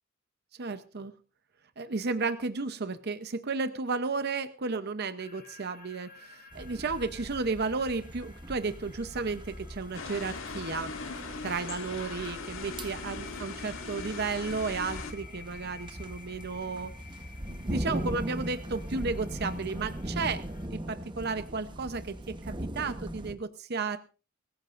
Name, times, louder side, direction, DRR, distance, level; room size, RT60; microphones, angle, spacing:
voice 1, 0.6-1.1 1.8-10.9 11.4-16.9 17.5-20.4 20.7-24.0, right 4 dB, 50° right, 11 dB, 0.8 m, -33 dB
sound 1, 5.2-20.7, left 5 dB, 50° left, 5.3 m, -53 dB
sound 2, 6.5-23.3, right 1 dB, 25° right, 1.0 m, -40 dB
sound 3, 9.9-15.1, left 4 dB, 70° left, 2.0 m, -40 dB
24.0 x 15.5 x 2.5 m, 0.34 s
head